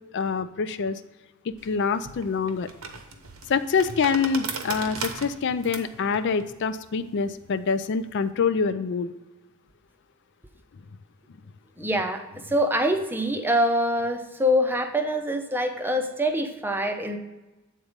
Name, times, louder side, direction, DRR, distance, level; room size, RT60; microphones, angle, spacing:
voice 1, 0.1-1.0 1.6-2.7 3.5-9.1, left 5 dB, 55° left, 12 dB, 0.4 m, -25 dB
sound 1, 1.6-8.2, right 5 dB, 75° right, 0.9 m, -38 dB
voice 2, 11.8-17.2, equal, 10° right, 6 dB, 0.6 m, -25 dB
8.5 x 4.0 x 5.1 m, 1.1 s
head